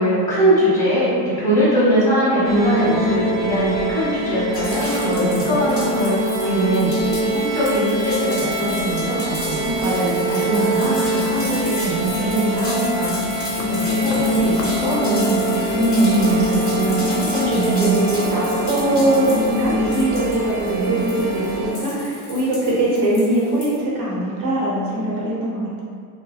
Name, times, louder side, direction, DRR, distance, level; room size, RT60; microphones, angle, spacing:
voice 1, 0.0-9.9 10.3-13.1 13.6-15.7 16.0-17.2 17.5-18.0 20.7-20.9, right 1 dB, 5° left, -10 dB, 1.2 m, -21 dB
sound 1, 2.4-21.7, equal, 25° right, 0.5 m, -24 dB
sound 2, 4.5-23.8, left 1 dB, 30° left, 1.3 m, -34 dB
voice 2, 5.1-5.5 9.5-10.5 15.8-16.8 17.3-25.8, right 1 dB, 60° right, -6 dB, 0.9 m, -22 dB
sound 3, 11.4-12.4 12.8-17.9, left 3 dB, 90° left, 0.5 m, -37 dB
2.6 x 2.1 x 2.3 m, 2.2 s
supercardioid pair, 100°, 46 cm